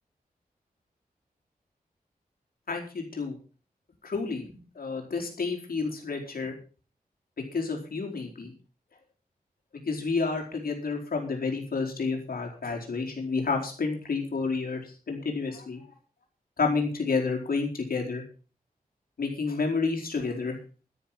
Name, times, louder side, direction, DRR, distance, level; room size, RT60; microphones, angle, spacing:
voice 1, 2.7-3.3 4.0-6.5 7.5-8.5 9.9-15.8 16.6-18.2 19.2-20.6, left 4 dB, 75° left, 1 dB, 4.5 m, -30 dB
12.5 x 11.5 x 5.9 m, 0.37 s
wide cardioid pair, 125°, 15 cm